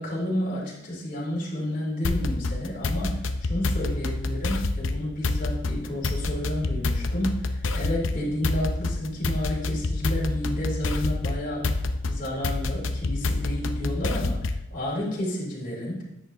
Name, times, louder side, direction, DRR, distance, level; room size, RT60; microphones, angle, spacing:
voice 1, 0.0-11.8 12.0-16.0, left 1 dB, 40° left, -4 dB, 2.7 m, -31 dB
sound 1, 2.0-14.7, left 2 dB, 70° left, 0.6 m, -28 dB
10.0 x 8.2 x 2.7 m, 0.86 s
head